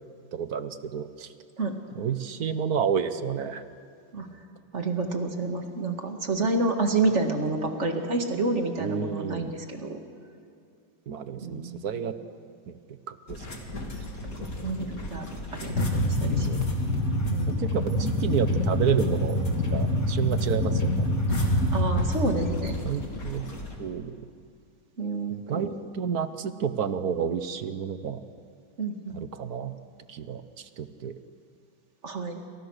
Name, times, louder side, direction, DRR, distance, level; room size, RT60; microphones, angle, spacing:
voice 1, 0.3-1.3 1.9-3.6 8.8-9.5 11.1-12.2 12.7-12.8 13.1-13.5 14.4-14.5 15.9-16.7 17.5-19.4 19.7-21.1 22.8-23.5 23.8-24.2 25.3-28.2 29.1-29.7 30.1-31.1, right 7 dB, 60° right, 11 dB, 1.3 m, -30 dB
voice 2, 4.7-10.0 11.4-11.8 14.6-15.3 15.6-16.6 17.3-17.6 21.7-22.8 25.0-25.7 28.8-29.1 32.0-32.4, right 3 dB, 35° right, 4 dB, 2.2 m, -29 dB
sound 1, 13.3-23.7, left 1 dB, 45° left, 3.1 m, -27 dB
28.5 x 26.5 x 6.5 m, 2.3 s
omnidirectional pair, 2.2 m